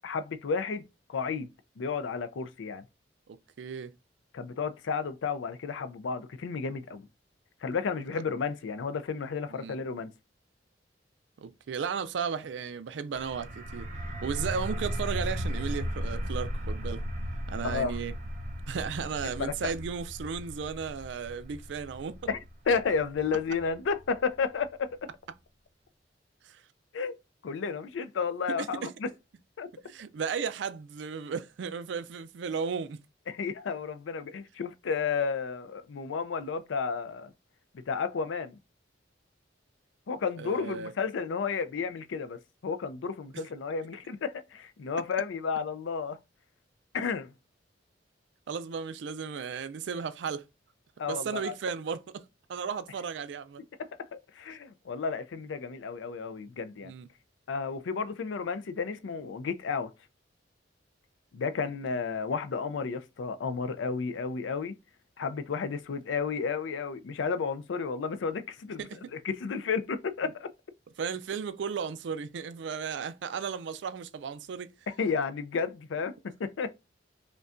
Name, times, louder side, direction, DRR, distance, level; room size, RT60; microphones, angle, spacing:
voice 1, 0.0-2.8 4.3-7.1 7.6-10.1 17.6-18.0 19.4-19.7 22.3-22.4 22.7-24.9 26.9-27.1 27.4-29.1 29.6-29.7 33.3-37.3 37.7-38.6 40.1-42.4 42.6-46.2 46.9-47.3 51.0-51.5 53.8-56.9 57.5-59.9 61.3-64.7 65.2-70.5 74.9-76.1 76.4-76.7, left 5 dB, 85° left, 0.4 m, -32 dB
voice 2, 3.3-3.9 8.1-8.2 9.5-9.8 11.4-13.9 14.2-17.0 17.5-18.1 18.7-22.2 26.4-26.6 28.5-28.9 29.8-33.0 40.4-40.9 43.3-43.4 48.5-50.4 51.1-53.6 56.8-57.1 68.8-69.1 71.0-74.7, right 6 dB, 70° right, 0.4 m, -35 dB
sound 1, 13.1-24.6, equal, 45° right, 0.8 m, -36 dB
5.1 x 2.2 x 2.5 m
head